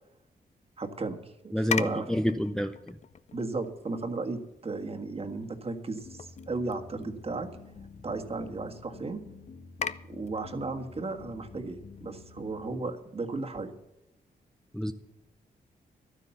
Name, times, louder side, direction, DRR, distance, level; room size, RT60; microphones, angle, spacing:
voice 1, 0.8-2.1 3.3-7.5 8.0-9.2 10.1-13.7, right 3 dB, 40° right, 5 dB, 1.7 m, -35 dB
voice 2, 1.5-2.9 14.7-14.9, equal, 5° left, 7 dB, 0.6 m, -28 dB
sound 1, 1.6-13.6, left 6 dB, 45° left, 0.6 m, -42 dB
sound 2, 6.0-12.9, left 4 dB, 65° left, 1.9 m, -49 dB
12.0 x 9.8 x 7.1 m, 0.86 s
cardioid pair, 80°, 16 cm